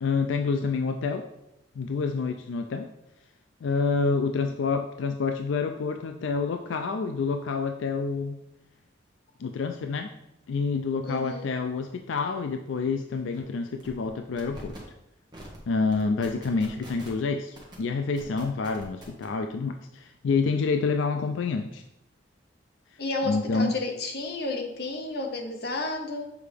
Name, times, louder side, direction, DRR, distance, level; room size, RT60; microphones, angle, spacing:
voice 1, 0.0-1.2 1.8-2.9 3.6-8.4 9.4-10.1 10.5-14.8 15.7-21.8 22.9-23.0 23.3-23.7, left 4 dB, 85° left, 6 dB, 0.4 m, -28 dB
voice 2, 11.0-11.5 23.0-26.3, left 2 dB, 55° left, 3 dB, 0.9 m, -32 dB
sound 1, 12.7-12.8 13.1-13.4 13.8-14.1 14.4-14.8 15.3-15.6 15.9-17.2 17.5-17.7 18.2-19.2, right 1 dB, 20° right, 1.2 m, -44 dB
6.9 x 4.5 x 3.4 m, 0.87 s
head